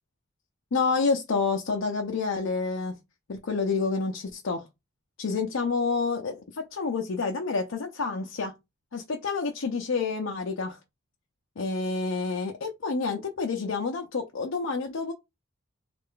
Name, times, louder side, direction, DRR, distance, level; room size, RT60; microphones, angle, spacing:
voice 1, 0.7-2.9 3.3-4.7 5.2-8.5 8.9-10.8 11.6-15.1, left 4 dB, 85° left, 0.6 m, -28 dB
3.2 x 2.4 x 3.7 m
head